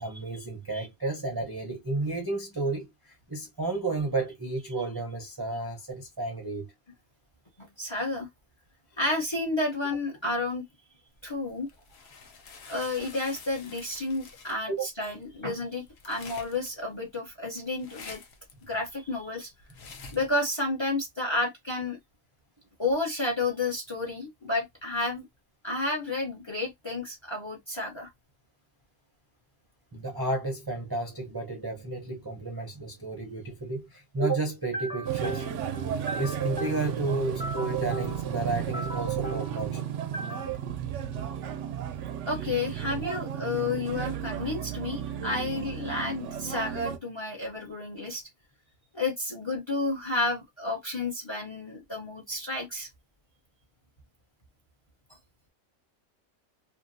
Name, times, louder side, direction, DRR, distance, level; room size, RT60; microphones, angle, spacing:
voice 1, 0.0-6.7 14.7-14.9 20.0-20.1 29.9-39.9 40.1-40.6, right 3 dB, 25° right, 0.5 m, -32 dB
voice 2, 7.6-8.3 9.0-10.6 11.2-11.7 12.7-18.2 18.7-19.5 20.1-22.0 22.8-25.2 25.6-28.1 42.3-48.2 48.9-52.9, left 2 dB, 25° left, 0.7 m, -31 dB
sound 1, 11.1-20.3, left 5 dB, 55° left, 0.8 m, -49 dB
sound 2, 35.1-47.0, right 9 dB, 65° right, 0.7 m, -34 dB
2.8 x 2.7 x 2.6 m
omnidirectional pair, 1.6 m